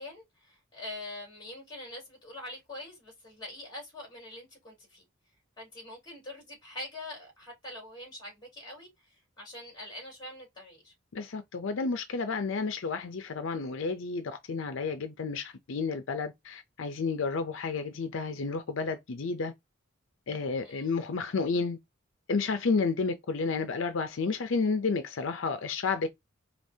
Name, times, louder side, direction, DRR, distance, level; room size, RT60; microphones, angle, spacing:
voice 1, 0.0-5.0 5.6-10.9 20.6-21.0, left 1 dB, 20° left, 3.4 m, -44 dB
voice 2, 11.1-19.5 20.3-21.8 22.3-26.1, left 4 dB, 75° left, 0.5 m, -31 dB
5.1 x 2.9 x 2.7 m
head